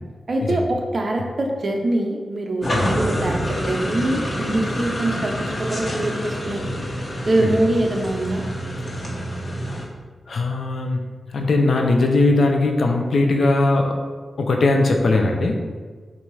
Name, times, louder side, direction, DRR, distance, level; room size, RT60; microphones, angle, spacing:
voice 1, 0.3-6.6 7.3-8.4, right 1 dB, 50° right, 2 dB, 0.9 m, -23 dB
sound 1, 2.6-9.9, equal, 35° left, 1.4 m, -27 dB
voice 2, 10.3-11.0 11.3-14.0 14.4-15.8, left 2 dB, 70° left, 2 dB, 0.8 m, -19 dB
7.4 x 2.8 x 4.8 m, 1.5 s
wide cardioid pair, 85°, 0 cm